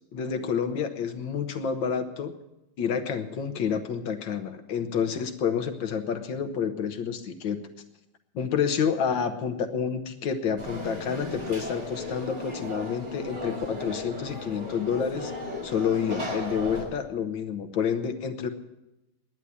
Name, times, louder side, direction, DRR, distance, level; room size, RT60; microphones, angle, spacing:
voice 1, 0.1-2.3 2.8-7.6 8.3-15.3 15.6-18.5, left 7 dB, 65° left, 8 dB, 1.6 m, -29 dB
Conversation / Crowd, 10.6-16.8, left 1 dB, 80° right, 6.6 m, -36 dB
11.0 x 9.9 x 9.8 m, 0.94 s
omnidirectional pair, 2.3 m